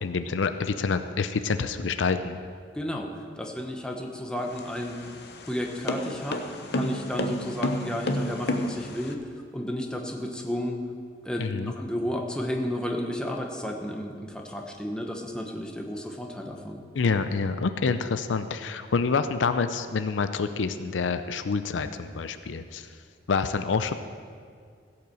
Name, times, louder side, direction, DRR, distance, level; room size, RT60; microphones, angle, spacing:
voice 1, 0.0-2.4 11.4-11.7 16.9-22.9 23.3-23.9, left 4 dB, 85° left, 10 dB, 0.5 m, -27 dB
voice 2, 2.7-3.1 3.4-5.0 5.4-6.4 6.7-9.2 9.5-10.8 11.2-16.8, left 1 dB, 5° left, 0 dB, 1.0 m, -32 dB
sound 1, 4.4-9.1, left 1 dB, 60° left, 0.9 m, -30 dB
16.0 x 5.8 x 7.6 m, 2.1 s
head